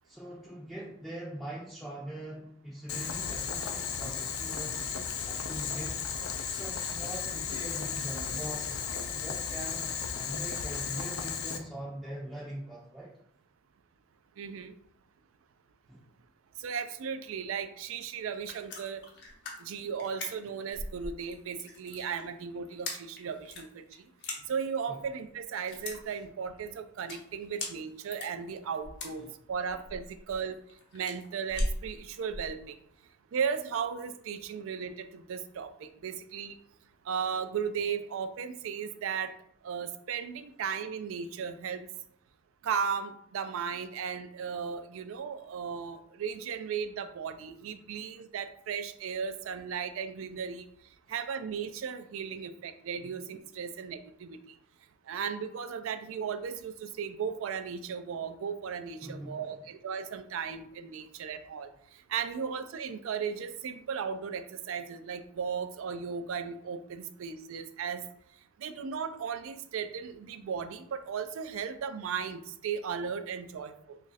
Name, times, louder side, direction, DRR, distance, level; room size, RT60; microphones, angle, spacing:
voice 1, 0.0-4.9 5.3-6.1 6.4-9.9 10.2-13.1 15.9-16.0 24.9-25.0 59.0-59.6, right 1 dB, ahead, -8 dB, 0.5 m, -42 dB
Boiling, 2.9-11.6, left 7 dB, 85° left, 0.4 m, -35 dB
voice 2, 14.4-14.7 16.6-19.0 19.6-23.8 24.5-30.6 30.9-32.8 33.3-36.6 37.0-39.3 39.6-41.9 42.6-50.7 51.1-54.6 55.1-68.0 68.6-74.0, right 6 dB, 70° right, 9 dB, 0.3 m, -36 dB
sound 1, 18.2-32.5, left 1 dB, 55° left, 0.7 m, -40 dB
3.0 x 2.4 x 4.0 m, 0.69 s
head